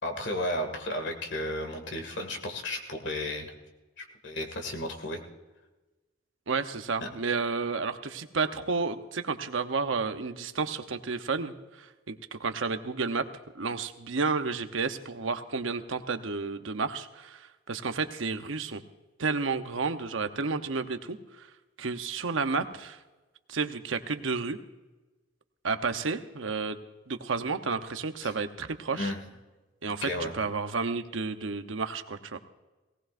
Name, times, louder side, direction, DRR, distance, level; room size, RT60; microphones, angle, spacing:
voice 1, 0.0-3.5 4.0-5.2 7.0-7.1 28.2-28.3 28.9-29.2 29.9-30.3, left 1 dB, 65° left, 4 dB, 2.1 m, -33 dB
voice 2, 6.5-13.2 13.5-18.8 19.2-21.5 21.8-23.0 23.5-24.6 25.6-26.8 27.1-29.1 29.8-32.4, right 4 dB, 90° right, 8 dB, 0.9 m, -31 dB
18.5 x 18.0 x 2.6 m, 1.2 s
head